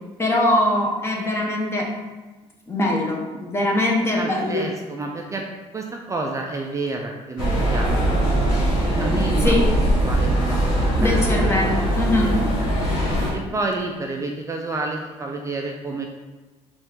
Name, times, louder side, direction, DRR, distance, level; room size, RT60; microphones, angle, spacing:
voice 1, 0.2-1.8 2.7-4.7 9.4-9.6 11.0-12.3, left 1 dB, 20° left, -2 dB, 0.9 m, -22 dB
voice 2, 4.2-5.4 5.7-8.0 8.7-9.6 9.8-11.3 11.6-11.7 12.2-12.4 13.3-16.1, right 3 dB, 25° right, 1 dB, 0.4 m, -29 dB
sound 1, 7.4-13.3, right 1 dB, 85° left, 1.4 m, -21 dB
4.1 x 2.5 x 3.6 m, 1.2 s
cardioid pair, 90°, 12 cm